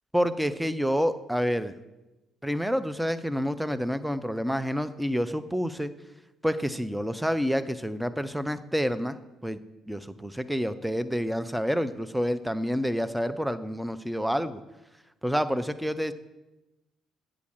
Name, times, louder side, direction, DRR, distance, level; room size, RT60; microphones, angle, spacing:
voice 1, 0.1-1.7 2.4-5.9 6.4-9.6 9.9-14.6 15.2-16.1, equal, 5° right, 11 dB, 0.4 m, -28 dB
8.3 x 5.0 x 6.2 m, 1.0 s
figure-of-eight pair, 45°, 0 cm